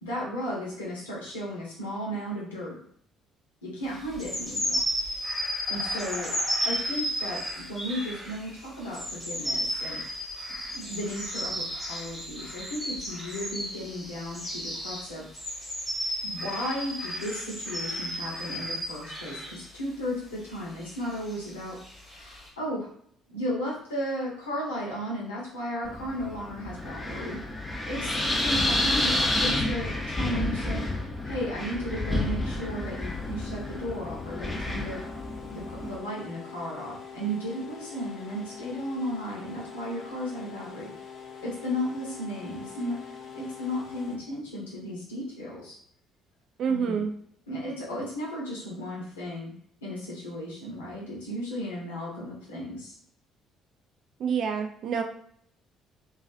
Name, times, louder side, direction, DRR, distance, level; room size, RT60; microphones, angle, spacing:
voice 1, 0.0-2.8 3.6-4.8 5.7-6.3 6.6-10.2 10.7-15.2 16.2-21.8 22.0-22.9 23.3-27.4 27.8-30.8 31.2-35.0 35.5-40.9 41.4-43.0 43.3-45.7 46.7-47.0 47.5-49.5 49.8-53.0, equal, 80° left, -5 dB, 0.8 m, -35 dB
sound 1, 4.1-19.7 20.4-22.5, equal, 5° right, 1.1 m, -33 dB
Wind, 25.8-36.0, left 1 dB, 15° left, 0.6 m, -30 dB
sound 2, 31.1-44.2, left 7 dB, 50° left, 0.3 m, -44 dB
voice 2, 46.6-47.1 54.2-55.0, right 6 dB, 55° right, 5 dB, 0.3 m, -27 dB
2.3 x 2.3 x 2.5 m, 0.64 s
figure-of-eight pair, 50°, 0 cm